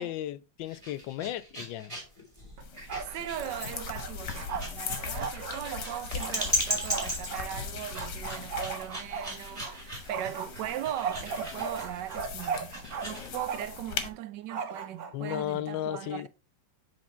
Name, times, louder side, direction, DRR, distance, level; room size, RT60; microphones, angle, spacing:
voice 1, 0.0-1.9 15.1-16.3, left 12 dB, 85° left, 1.3 m, -34 dB
sound 1, 0.6-13.3, equal, 15° right, 2.4 m, -37 dB
sound 2, 2.6-14.1, left 6 dB, 70° left, 1.6 m, -40 dB
Bark, 2.6-3.2 3.4-7.5 7.9-9.7 10.1-13.1 13.3-13.8 14.5-15.4, right 6 dB, 60° right, 1.4 m, -37 dB
voice 2, 2.8-16.3, right 12 dB, 75° right, 1.2 m, -39 dB
7.7 x 3.7 x 4.3 m
omnidirectional pair, 2.0 m